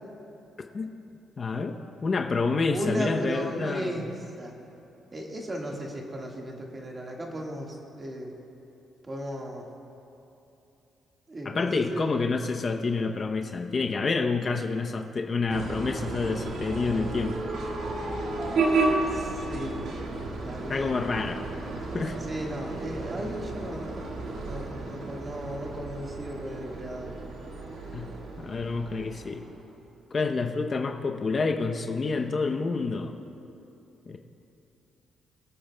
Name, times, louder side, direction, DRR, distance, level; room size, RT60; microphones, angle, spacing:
voice 1, 1.4-4.1 11.4-17.5 20.7-21.4 21.9-22.2 27.9-29.5 30.1-33.1 34.1-34.2, left 4 dB, 40° left, 4 dB, 0.6 m, -28 dB
voice 2, 2.7-4.1 4.4-4.6 5.1-8.3 9.0-9.7 11.3-12.1 19.1-19.8 20.4-21.0 22.3-24.1 24.4-27.2, equal, 30° right, 0 dB, 1.6 m, -35 dB
sound 1, 15.5-29.8, right 3 dB, 70° right, 1.6 m, -32 dB
24.0 x 8.7 x 2.2 m, 2.9 s
cardioid pair, 90°, 0 cm